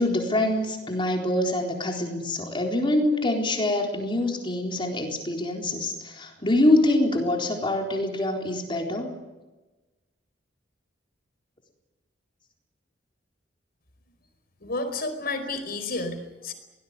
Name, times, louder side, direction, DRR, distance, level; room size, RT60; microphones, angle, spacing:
voice 1, 0.0-9.1, left 1 dB, 25° left, 2 dB, 4.0 m, -25 dB
voice 2, 14.6-16.5, left 2 dB, 55° left, 9 dB, 4.9 m, -31 dB
24.0 x 19.0 x 9.6 m, 1.1 s
head